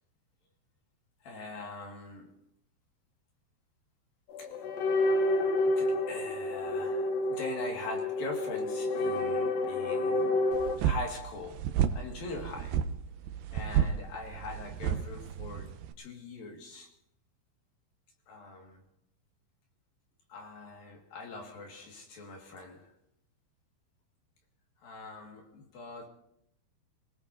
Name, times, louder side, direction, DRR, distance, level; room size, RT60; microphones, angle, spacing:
voice 1, 1.2-2.4 4.4-4.5 5.6-10.4 10.8-12.8 13.5-16.9 18.3-18.8 20.3-22.9 24.8-26.1, left 3 dB, 55° left, 3.4 m, -42 dB
sound 1, 4.3-10.8, left 2 dB, 75° left, 2.1 m, -29 dB
sound 2, 10.5-15.9, right 9 dB, 85° right, 2.2 m, -31 dB
26.0 x 17.5 x 2.7 m
omnidirectional pair, 5.3 m